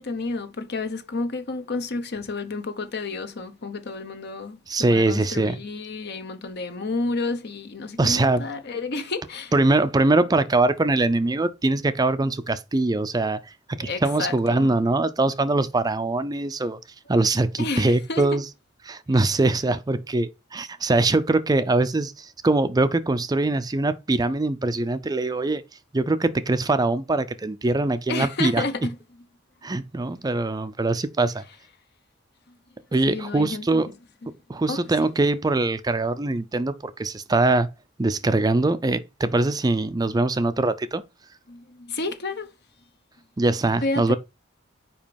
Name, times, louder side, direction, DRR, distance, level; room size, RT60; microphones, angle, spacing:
voice 1, 0.0-9.5 13.8-14.7 17.6-18.3 28.1-29.0 33.1-33.8 34.7-34.8 41.5-42.5 43.8-44.2, left 3 dB, 55° left, 0.9 m, -30 dB
voice 2, 4.7-5.6 8.0-8.5 9.5-16.8 17.1-18.4 18.9-25.6 25.9-28.6 29.6-31.4 32.9-33.9 34.5-37.7 38.0-41.0 43.4-44.2, right 2 dB, 20° right, 0.4 m, -22 dB
5.2 x 4.9 x 5.2 m
head